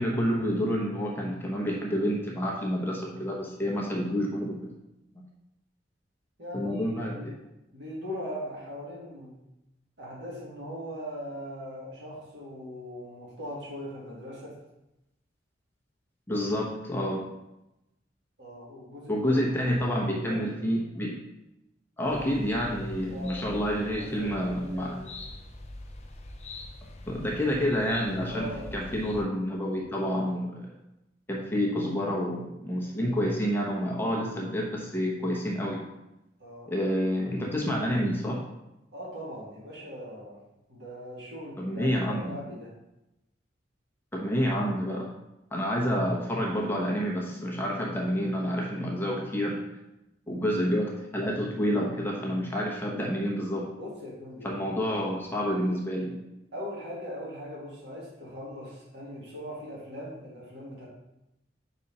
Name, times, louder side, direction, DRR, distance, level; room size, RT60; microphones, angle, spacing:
voice 1, 0.0-4.8 6.5-7.3 16.3-17.3 19.1-21.2 22.0-25.0 27.1-30.7 31.3-35.8 36.7-38.4 41.6-42.3 44.1-45.1 45.5-49.7 50.3-53.7 54.4-56.2, equal, 10° left, -3 dB, 1.0 m, -29 dB
voice 2, 6.4-7.4 7.7-9.4 10.0-14.6 16.4-16.5 18.4-20.5 23.1-25.1 28.3-28.6 36.4-36.7 38.9-40.4 40.7-42.7 53.8-54.8 56.5-60.9, equal, 65° right, -5 dB, 2.1 m, -40 dB
sound 1, 22.1-29.2, left 2 dB, 40° left, 0.7 m, -44 dB
5.3 x 4.2 x 5.4 m, 0.92 s
head